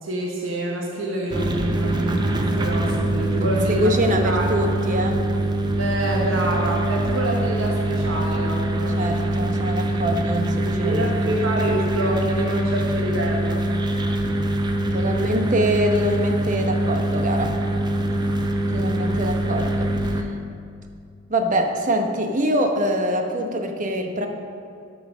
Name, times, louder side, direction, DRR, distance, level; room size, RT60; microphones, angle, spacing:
voice 1, 0.0-4.6 5.8-9.0 10.8-13.7 18.8-19.2, right 1 dB, 90° right, -1 dB, 1.3 m, -27 dB
sound 1, 1.3-20.2, right 1 dB, 20° right, 0.8 m, -23 dB
voice 2, 3.4-5.3 8.9-11.3 14.9-17.6 18.7-20.3 21.3-24.3, right 1 dB, 40° right, 4 dB, 1.0 m, -24 dB
13.0 x 5.9 x 6.1 m, 2.4 s
head